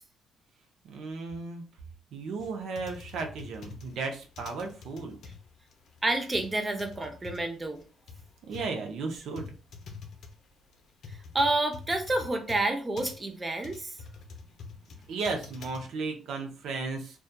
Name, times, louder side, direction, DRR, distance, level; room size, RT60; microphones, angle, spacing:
voice 1, 0.8-1.6 2.1-5.2 8.5-9.5 15.1-17.2, right 4 dB, 75° right, 3 dB, 0.5 m, -35 dB
sound 1, 2.4-15.8, left 4 dB, 65° left, 0.5 m, -46 dB
voice 2, 6.0-7.8 11.3-13.9, right 2 dB, 20° right, 4 dB, 0.5 m, -29 dB
2.7 x 2.2 x 2.2 m, 0.36 s
cardioid pair, 90°, 0 cm